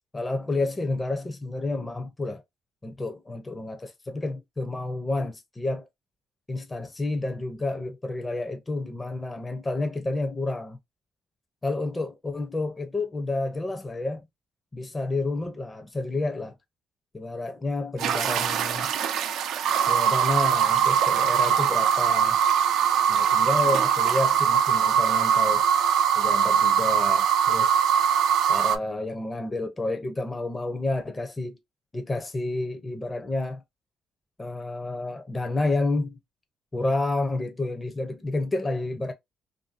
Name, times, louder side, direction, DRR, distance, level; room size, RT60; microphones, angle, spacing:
voice 1, 0.1-2.4 2.8-5.9 6.5-10.8 11.6-14.3 14.7-16.5 17.1-18.9 19.9-22.4 23.1-25.6 26.2-27.8 28.5-31.6 31.9-33.6 34.4-36.2 36.7-39.1, left 2 dB, 20° left, 0.5 m, -30 dB
sound 1, 18.0-28.8, right 8 dB, 80° right, 0.4 m, -22 dB
2.6 x 2.6 x 2.4 m
cardioid pair, 90°, 0 cm